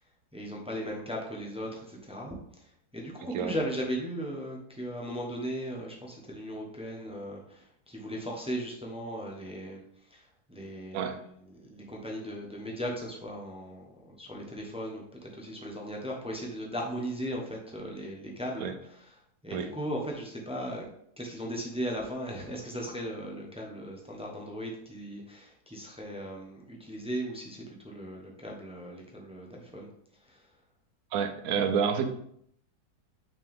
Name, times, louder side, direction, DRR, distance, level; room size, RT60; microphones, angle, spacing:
voice 1, 0.3-2.3 2.6-9.8 10.1-11.2 11.5-19.1 19.4-20.9 21.2-29.9 30.3-30.5, equal, 5° right, -1 dB, 0.7 m, -37 dB
voice 2, 31.1-32.1, right 7 dB, 65° right, 7 dB, 1.0 m, -28 dB
5.9 x 4.5 x 3.5 m, 0.70 s
omnidirectional pair, 1.8 m